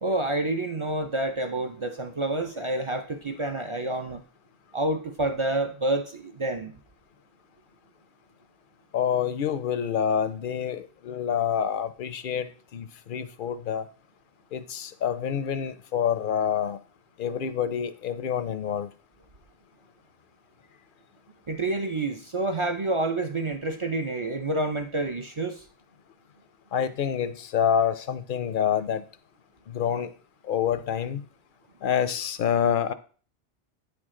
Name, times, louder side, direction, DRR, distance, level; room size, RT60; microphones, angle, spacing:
voice 1, 0.0-4.2 4.7-6.7 21.5-25.6, right 2 dB, 45° right, 0.4 m, -28 dB
voice 2, 8.9-13.8 14.5-16.8 17.2-18.9 26.7-29.0 29.7-30.1 30.4-31.2 31.8-32.9, left 8 dB, 60° left, 0.6 m, -27 dB
9.0 x 4.7 x 3.7 m
omnidirectional pair, 1.2 m